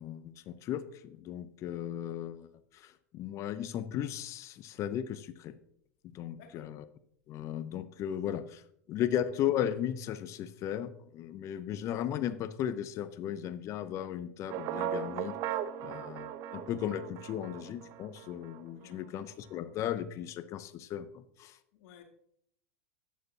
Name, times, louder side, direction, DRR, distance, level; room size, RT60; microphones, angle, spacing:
voice 1, 0.0-5.6 6.1-6.8 7.3-8.6 8.9-21.6, left 10 dB, 40° left, 0.7 m, -36 dB
voice 2, 6.2-6.7 18.7-19.2 21.7-22.0, left 8 dB, 60° left, 2.2 m, -56 dB
sound 1, 14.5-18.7, right 10 dB, 45° right, 0.6 m, -38 dB
11.5 x 9.3 x 2.8 m
hypercardioid pair, 95°, 8 cm